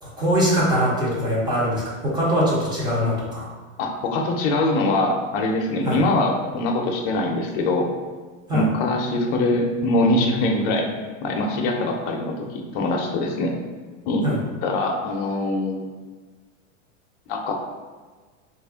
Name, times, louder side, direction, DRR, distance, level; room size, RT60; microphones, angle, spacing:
voice 1, 0.0-3.5 5.8-6.0 8.5-8.6 14.2-14.3, equal, 10° right, -6 dB, 0.6 m, -22 dB
voice 2, 3.8-7.9 8.5-10.9 11.2-13.5 14.1-15.8 17.3-17.5, left 2 dB, 45° left, 1 dB, 0.6 m, -23 dB
3.1 x 2.5 x 3.5 m, 1.4 s
supercardioid pair, 155°, 38 cm